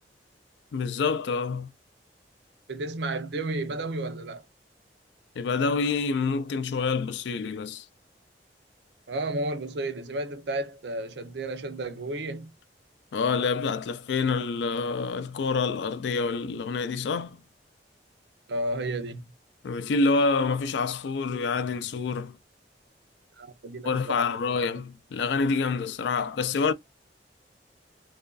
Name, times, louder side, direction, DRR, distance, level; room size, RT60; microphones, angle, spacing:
voice 1, 0.7-1.7 5.4-7.9 13.1-17.4 19.6-22.4 23.8-26.7, left 4 dB, 70° left, 0.3 m, -27 dB
voice 2, 2.7-4.4 9.1-12.5 18.5-19.3 23.4-24.3 24.5-24.8, right 2 dB, 65° right, 0.5 m, -32 dB
2.4 x 2.2 x 2.2 m
head